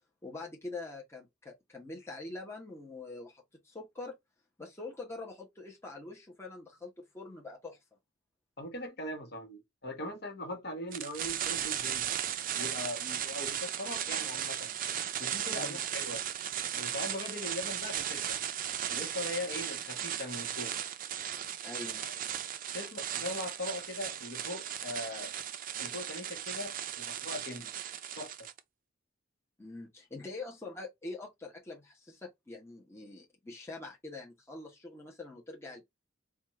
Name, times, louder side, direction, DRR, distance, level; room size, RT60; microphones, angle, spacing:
voice 1, 0.2-4.2 4.6-7.8 15.5-15.8 21.6-22.0 29.6-35.8, left 3 dB, 15° left, 1.0 m, -44 dB
voice 2, 8.6-12.1 12.6-14.7 15.2-16.2 16.8-18.4 18.9-20.8 22.0-22.2 22.7-25.3 25.8-27.7 28.2-28.5, left 1 dB, 55° left, 1.2 m, -40 dB
sound 1, 10.9-28.6, right 10 dB, 45° right, 0.4 m, -36 dB
4.2 x 2.4 x 3.1 m
head